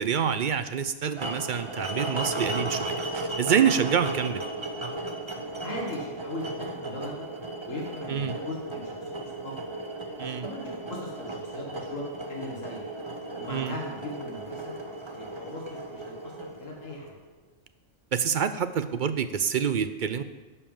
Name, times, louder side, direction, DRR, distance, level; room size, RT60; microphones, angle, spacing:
voice 1, 0.0-4.4 8.1-8.3 10.2-10.4 13.5-13.7 18.1-20.2, right 7 dB, 60° right, 11 dB, 0.5 m, -27 dB
sound 1, 1.2-17.3, right 2 dB, 25° right, 0.9 m, -35 dB
voice 2, 5.6-7.2 7.7-9.5 10.4-12.9 13.4-14.7 15.1-17.1, left 1 dB, 80° left, -1 dB, 1.9 m, -39 dB
11.0 x 5.5 x 7.2 m, 1.2 s
omnidirectional pair, 1.3 m